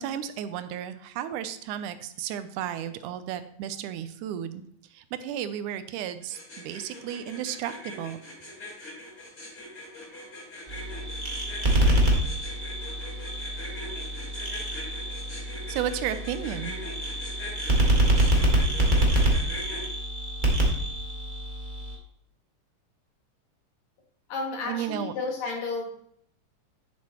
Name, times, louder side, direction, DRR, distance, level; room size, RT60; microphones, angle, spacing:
voice 1, 0.0-4.6 4.9-8.2 15.7-16.7 24.7-25.1, right 10 dB, 85° right, 11 dB, 2.1 m, -33 dB
sound 1, 6.2-19.8, left 2 dB, 35° left, 2.8 m, -41 dB
sound 2, 10.7-21.9, right 1 dB, 40° right, 0.6 m, -26 dB
voice 2, 24.3-25.9, left 3 dB, 65° left, 0 dB, 2.9 m, -32 dB
9.4 x 7.3 x 2.9 m, 0.66 s
omnidirectional pair, 3.5 m